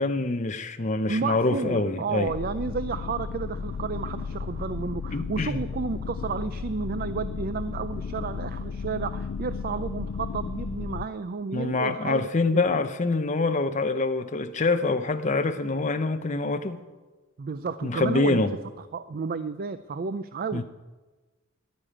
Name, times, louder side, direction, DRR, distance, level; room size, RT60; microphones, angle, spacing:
voice 1, 0.0-2.3 5.1-5.6 11.5-16.8 17.8-18.5 20.5-20.6, left 3 dB, 35° left, 8 dB, 0.7 m, -25 dB
voice 2, 1.1-12.2 12.5-12.6 17.4-18.4 18.9-20.6, right 5 dB, 45° right, 13 dB, 0.4 m, -32 dB
sound 1, 2.3-11.0, left 5 dB, 70° left, 0.4 m, -34 dB
11.5 x 9.7 x 8.8 m, 1.2 s
head